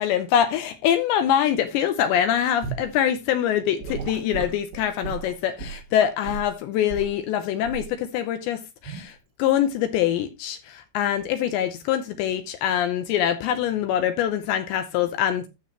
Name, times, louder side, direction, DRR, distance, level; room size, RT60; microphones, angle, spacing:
voice 1, 0.0-15.5, left 10 dB, 85° left, 2.6 m, -24 dB
Gurgling / Sink (filling or washing) / Liquid, 2.6-2.9 3.8-6.5 6.9-7.1 7.6-7.9 8.8-9.1, right 6 dB, 75° right, 5.7 m, -34 dB
14.5 x 6.3 x 3.0 m
omnidirectional pair, 5.9 m